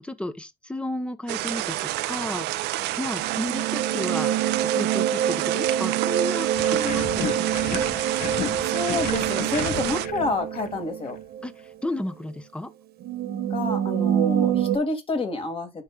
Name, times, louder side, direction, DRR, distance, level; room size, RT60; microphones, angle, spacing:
voice 1, 0.0-2.7 3.0-7.8 11.4-12.7, left 1 dB, 5° left, 0.9 m, -33 dB
sound 1, 1.3-10.1, right 17 dB, 85° right, 0.6 m, -29 dB
sound 2, 3.2-11.5 11.9-12.0 13.0-14.8, right 10 dB, 65° right, 1.3 m, -26 dB
sound 3, 6.5-11.2, left 7 dB, 55° left, 1.1 m, -34 dB
voice 2, 8.7-11.2 13.5-15.7, left 2 dB, 35° left, 2.4 m, -28 dB
11.5 x 4.9 x 2.4 m
cardioid pair, 110°, 17 cm